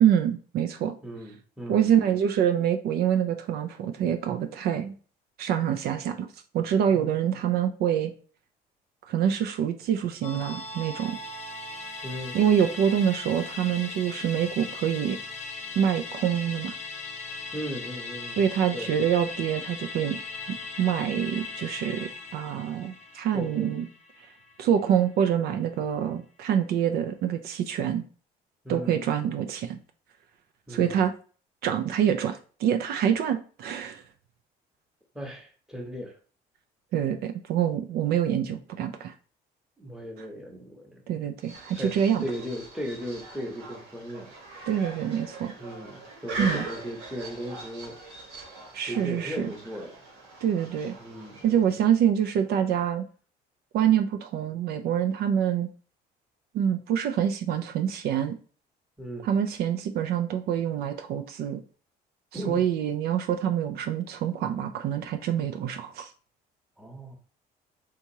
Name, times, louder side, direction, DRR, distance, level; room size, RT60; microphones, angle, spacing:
voice 1, 0.0-0.9 1.7-4.9 5.4-6.3 6.5-8.1 9.1-11.2 12.3-15.2 15.8-16.7 18.4-20.2 20.5-23.9 24.6-28.0 28.7-29.8 30.7-31.1 31.6-34.0 36.9-39.1 41.1-42.3 44.7-45.5 46.4-46.7 48.7-49.5 50.4-50.9 51.4-53.1 53.7-55.7 56.5-58.4 59.2-61.6 62.3-66.1, right 9 dB, 65° right, 7 dB, 0.4 m, -26 dB
voice 2, 1.0-2.1 12.0-12.4 17.5-18.4 18.7-18.9 23.3-23.7 28.6-29.0 30.7-31.0 35.1-36.1 39.8-41.0 41.8-44.3 45.6-48.0 48.8-49.9 51.0-51.8 59.0-59.3 62.3-62.6 66.8-67.2, equal, 5° right, 1 dB, 0.9 m, -37 dB
Musical instrument, 10.2-24.9 25.2-25.3, left 4 dB, 40° left, 0.6 m, -39 dB
sound 1, 41.4-51.8, right 2 dB, 85° right, 1.4 m, -41 dB
3.5 x 2.8 x 2.7 m, 0.39 s
cardioid pair, 110°, 17 cm